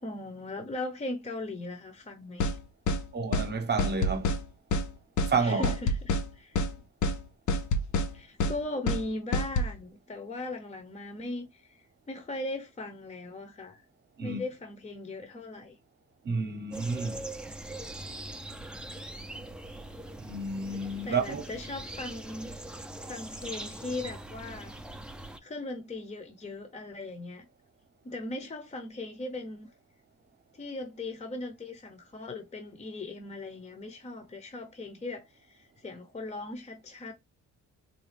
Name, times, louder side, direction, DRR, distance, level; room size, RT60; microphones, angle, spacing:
voice 1, 0.0-2.6 5.4-6.6 8.1-13.8 14.2-15.8 21.0-22.5 23.0-24.7 25.4-27.5 28.0-29.7 30.5-37.1, left 2 dB, 25° left, 0.8 m, -39 dB
sound 1, 2.4-2.6 2.9-3.0 3.3-3.5 3.8-4.4 4.7-4.9 5.2-5.3 5.6-6.3 6.6-6.7 7.0-7.2 7.5-8.1 8.4-8.6 8.9-9.0 9.3-9.7, left 2 dB, 70° left, 0.7 m, -27 dB
voice 2, 3.1-4.3 5.3-5.7 14.2-14.4 16.2-17.2 20.2-21.4, right 4 dB, 35° right, 0.9 m, -30 dB
sound 2, 16.7-25.4, right 1 dB, 5° right, 0.5 m, -42 dB
4.1 x 2.2 x 3.2 m
cardioid pair, 105°, 30 cm